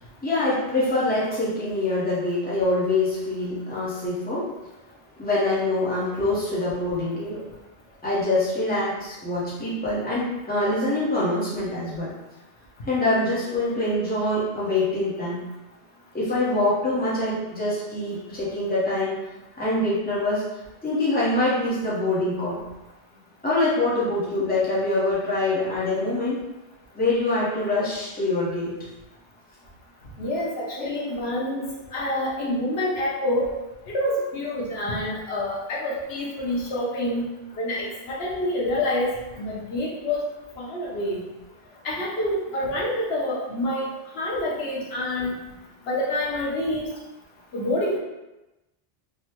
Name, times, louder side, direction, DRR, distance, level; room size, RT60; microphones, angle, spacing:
voice 1, 0.2-4.5 5.2-7.4 8.0-12.1 12.8-15.4 16.1-19.2 19.6-20.5 20.8-22.6 23.4-26.4 26.9-28.8 30.8-30.9, left 2 dB, 10° left, -8 dB, 0.8 m, -24 dB
voice 2, 30.2-33.5 33.9-37.3 37.6-40.2 40.6-41.2 41.8-43.9 44.2-45.3 45.9-46.9 47.5-48.0, left 1 dB, 75° left, -4 dB, 1.0 m, -27 dB
3.5 x 2.1 x 2.9 m, 1.0 s
omnidirectional pair, 1.1 m